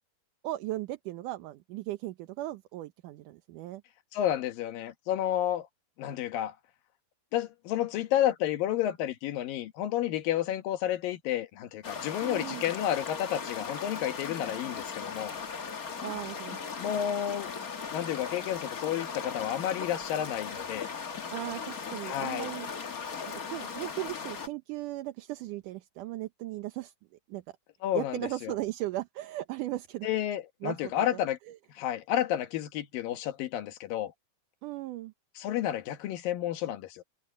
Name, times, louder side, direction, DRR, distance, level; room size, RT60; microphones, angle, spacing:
voice 1, 0.4-3.8 12.2-12.6 16.0-16.6 21.3-22.7 23.5-26.9 27.3-27.4 27.9-30.1 30.6-31.2 31.5-31.6 34.6-35.1, right 16 dB, 75° right, 2.3 m, -37 dB
voice 2, 4.1-5.7 6.0-6.6 7.3-15.4 16.8-17.5 17.9-20.9 22.0-22.5 27.8-28.5 30.0-31.4 31.7-34.1 35.4-37.0, left 11 dB, 80° left, 3.1 m, -31 dB
sound 1, 11.8-24.5, left 5 dB, 45° left, 1.1 m, -38 dB
omnidirectional pair, 4.0 m